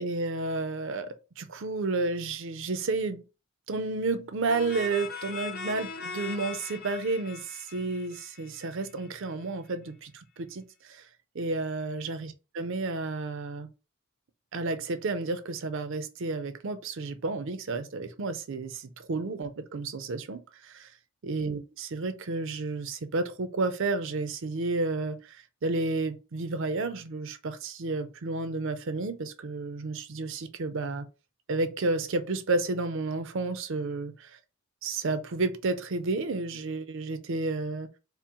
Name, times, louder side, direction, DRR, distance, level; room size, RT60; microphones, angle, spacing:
voice 1, 0.0-3.2 3.7-11.1 11.3-13.7 14.5-20.9 21.2-25.4 25.6-31.1 31.5-34.3 34.8-37.9, right 3 dB, 55° right, 0.5 m, -31 dB
sound 1, 4.5-9.1, left 5 dB, 40° left, 0.7 m, -40 dB
4.4 x 2.0 x 3.7 m
head